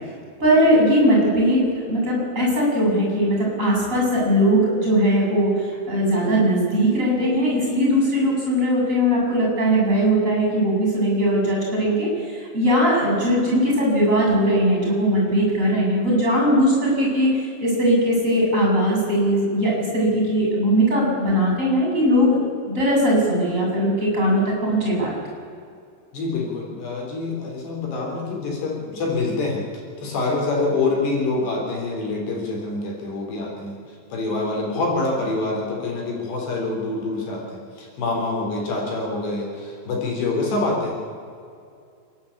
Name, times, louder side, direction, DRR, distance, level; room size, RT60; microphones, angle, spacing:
voice 1, 0.4-22.4 22.7-25.1, equal, 15° right, -2 dB, 7.6 m, -19 dB
voice 2, 26.1-29.6 30.0-33.8 34.1-40.9, left 3 dB, 70° left, -1 dB, 5.7 m, -26 dB
30.0 x 10.5 x 8.5 m, 2.4 s
omnidirectional pair, 5.2 m